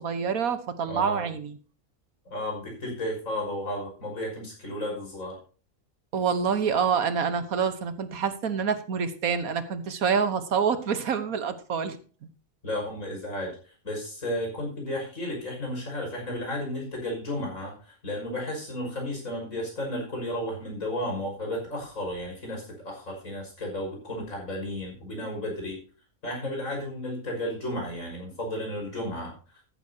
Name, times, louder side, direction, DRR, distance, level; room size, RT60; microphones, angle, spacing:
voice 1, 0.0-1.6 6.1-12.0, right 6 dB, 80° right, 11 dB, 1.6 m, -27 dB
voice 2, 0.8-1.3 2.2-5.4 12.6-25.8 26.2-29.3, left 1 dB, 70° left, 0 dB, 6.4 m, -33 dB
14.0 x 11.5 x 2.8 m, 0.39 s
omnidirectional pair, 1.5 m